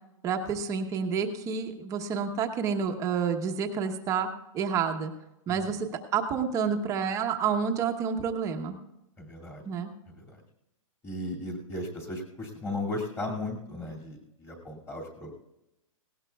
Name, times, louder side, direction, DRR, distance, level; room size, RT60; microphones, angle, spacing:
voice 1, 0.2-4.3 4.5-5.1 5.5-8.8 9.7-9.9, right 6 dB, 20° right, 4 dB, 1.0 m, -29 dB
voice 2, 5.5-5.8 9.2-9.6 10.2-10.4 11.0-15.3, left 2 dB, 15° left, 0 dB, 2.4 m, -36 dB
18.5 x 17.5 x 2.3 m, 0.92 s
hypercardioid pair, 160°, 18 cm